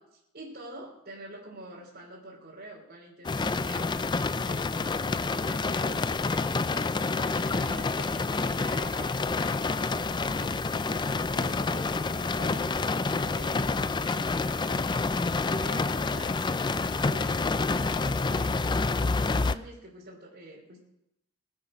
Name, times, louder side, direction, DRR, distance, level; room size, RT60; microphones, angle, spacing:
voice 1, 0.0-3.9 4.4-6.7 7.1-20.8, right 1 dB, 50° right, -5 dB, 3.3 m, -47 dB
sound 1, 3.2-19.5, left 3 dB, 20° left, 0.4 m, -28 dB
22.0 x 8.2 x 5.0 m, 0.83 s
head